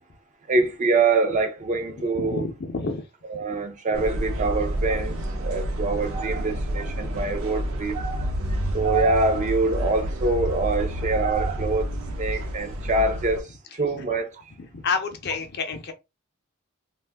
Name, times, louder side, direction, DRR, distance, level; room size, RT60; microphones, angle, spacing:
voice 1, 0.5-2.4 3.3-14.4, right 3 dB, 35° right, 0.5 m, -25 dB
voice 2, 2.1-3.1 3.5-3.6 6.9-7.1 12.3-12.4 13.9-14.1 14.6-15.9, left 4 dB, 50° left, 0.6 m, -30 dB
sound 1, 3.9-13.4, equal, 70° right, 0.7 m, -29 dB
2.5 x 2.3 x 3.4 m
head